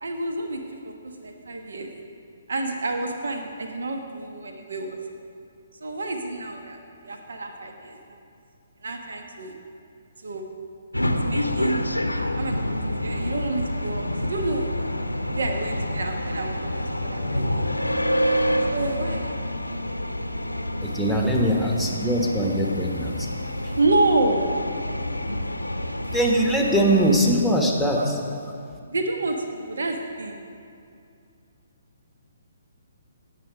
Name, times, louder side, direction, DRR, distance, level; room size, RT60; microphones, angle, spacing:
voice 1, 0.0-1.9 2.5-5.0 5.8-6.8 7.0-8.2 8.8-9.5 10.2-10.5 11.0-12.6 13.0-14.7 15.3-17.7 18.7-19.3 23.8-24.4 27.9-28.1 28.9-30.4, right 2 dB, 65° right, 4 dB, 1.1 m, -28 dB
sound 1, 10.9-27.3, left 1 dB, 90° left, 0.6 m, -28 dB
voice 2, 20.8-23.3 23.6-23.7 26.1-28.1, equal, ahead, 0 dB, 1.3 m, -22 dB
17.0 x 6.8 x 5.0 m, 2.4 s
figure-of-eight pair, 130°, 0 cm